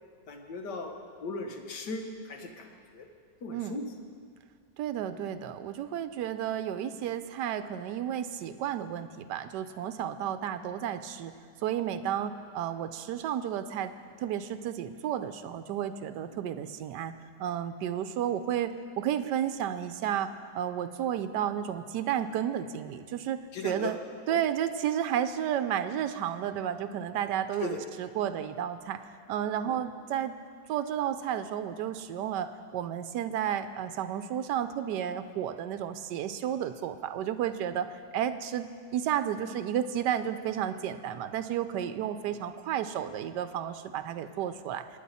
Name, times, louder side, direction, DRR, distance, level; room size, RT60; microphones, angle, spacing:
voice 1, 0.3-1.0 1.2-2.7 2.9-3.1 3.4-3.9 16.3-16.4 23.5-23.9 24.3-24.4 27.6-27.8 29.7-29.8 42.3-42.4, left 3 dB, 80° left, 3 dB, 1.9 m, -37 dB
voice 2, 4.8-11.3 11.6-13.9 14.2-17.1 17.4-20.3 20.5-24.0 24.3-29.0 29.3-30.4 30.7-44.8, right 10 dB, 85° right, 10 dB, 1.2 m, -32 dB
24.5 x 9.4 x 4.2 m, 2.2 s
omnidirectional pair, 1.8 m